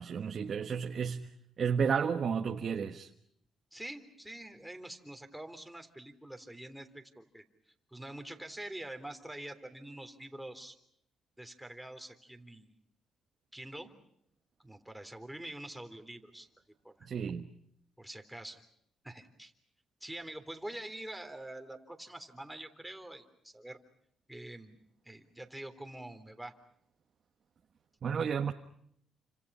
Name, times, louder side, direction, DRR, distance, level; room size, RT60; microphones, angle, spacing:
voice 1, 0.0-3.1 17.0-17.5 28.0-28.5, right 6 dB, 50° right, 1.4 m, -32 dB
voice 2, 3.7-7.4 7.9-10.8 11.4-12.7 13.5-13.9 14.6-16.5 16.8-17.1 18.0-18.6 19.0-19.5 20.0-23.8 24.3-24.8 25.0-26.5, right 1 dB, 5° right, 3.5 m, -45 dB
30.0 x 26.5 x 5.6 m
cardioid pair, 90°, 0 cm